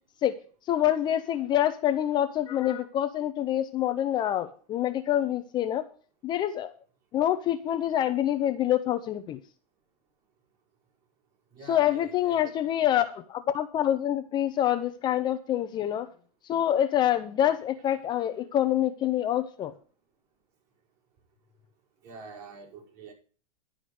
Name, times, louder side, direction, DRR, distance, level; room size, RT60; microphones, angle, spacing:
voice 1, 0.7-5.9 6.2-6.7 7.1-9.4 11.7-16.1 16.4-19.7, left 11 dB, 20° left, 9 dB, 0.6 m, -26 dB
voice 2, 11.5-12.5 22.0-23.1, right 4 dB, 45° right, -1 dB, 5.1 m, -46 dB
11.5 x 4.9 x 7.9 m, 0.40 s
supercardioid pair, 145°, 20 cm